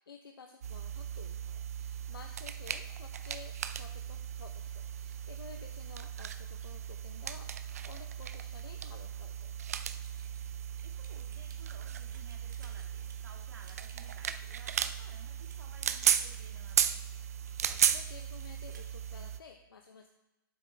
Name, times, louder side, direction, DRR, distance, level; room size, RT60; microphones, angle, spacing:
voice 1, 0.0-9.5 17.7-20.1, left 5 dB, 85° left, 4 dB, 0.9 m, -53 dB
sound 1, 0.6-19.4, right 9 dB, 45° right, 0.4 m, -36 dB
Typing, 10.0-19.0, right 5 dB, 60° right, 1.6 m, -58 dB
voice 2, 10.8-17.0, right 4 dB, 75° right, 1 dB, 2.0 m, -57 dB
8.7 x 7.3 x 3.3 m, 1.0 s
hypercardioid pair, 170°, 12 cm